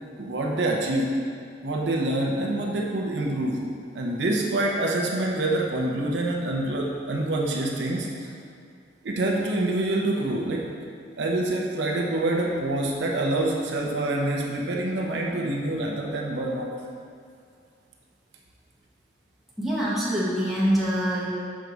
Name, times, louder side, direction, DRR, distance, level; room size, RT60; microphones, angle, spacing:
voice 1, 0.2-1.1 1.6-3.6 3.9-8.1 9.0-10.7 11.2-16.7, right 1 dB, 65° right, -1 dB, 0.7 m, -26 dB
voice 2, 19.6-21.3, equal, ahead, -8 dB, 1.1 m, -24 dB
6.2 x 4.7 x 4.0 m, 2.4 s
head